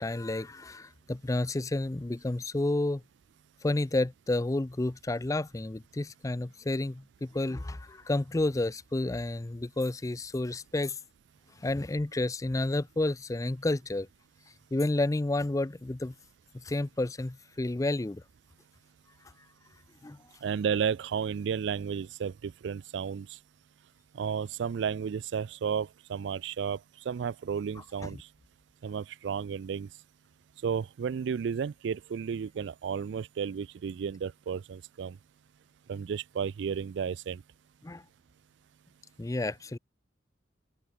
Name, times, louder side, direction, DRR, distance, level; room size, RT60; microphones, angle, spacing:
voice 1, 0.0-3.0 3.6-11.0 11.6-14.1 14.7-16.1 16.5-18.2 20.0-20.2 28.0-28.2 37.8-38.0 39.2-39.8, left 2 dB, 15° left, 0.4 m, -30 dB
voice 2, 20.4-23.4 24.1-26.8 27.1-28.3 28.8-29.9 30.6-35.2 35.9-37.4, right 7 dB, 65° right, 0.3 m, -33 dB
head